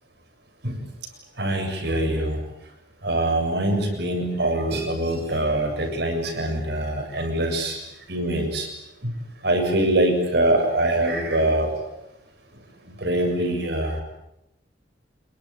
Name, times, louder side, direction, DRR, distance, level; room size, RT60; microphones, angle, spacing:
voice 1, 1.4-2.4 3.0-7.8 8.1-8.7 9.0-9.1 9.4-11.8 12.9-14.0, right 1 dB, 65° right, 5 dB, 7.3 m, -23 dB
27.0 x 23.0 x 8.9 m, 0.88 s
head